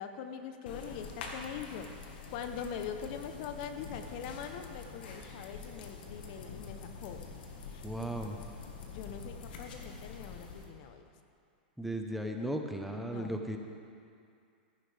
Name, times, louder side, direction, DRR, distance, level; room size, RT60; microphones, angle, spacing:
voice 1, 0.0-1.9 2.3-7.3 7.7-7.8 8.8-11.0 13.0-13.4, left 7 dB, 55° left, 8 dB, 0.8 m, -42 dB
sound 1, 0.7-10.7, left 4 dB, 70° left, 1.5 m, -46 dB
voice 2, 7.8-8.4 11.8-13.6, right 1 dB, ahead, 3 dB, 0.8 m, -36 dB
15.0 x 10.0 x 3.4 m, 2.4 s
hypercardioid pair, 125°, 5 cm